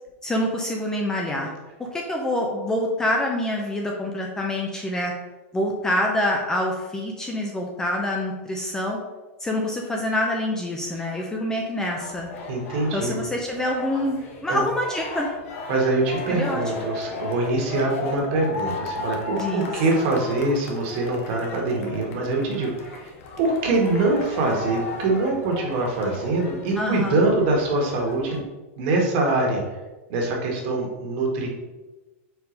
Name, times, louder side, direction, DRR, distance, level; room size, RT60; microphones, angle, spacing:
voice 1, 0.2-1.5 1.9-5.1 5.5-9.0 9.4-12.3 12.9-15.3 16.3-16.6 19.4-19.7 26.8-27.2, left 1 dB, 10° left, 0 dB, 0.5 m, -26 dB
sound 1, 12.0-28.4, left 3 dB, 75° left, 1.1 m, -36 dB
voice 2, 12.5-13.2 14.5-14.6 15.7-23.1 23.4-28.4 28.8-29.6 30.1-31.5, right 2 dB, 50° right, 0 dB, 1.6 m, -24 dB
4.7 x 3.9 x 5.1 m, 1.2 s
supercardioid pair, 160°, 7 cm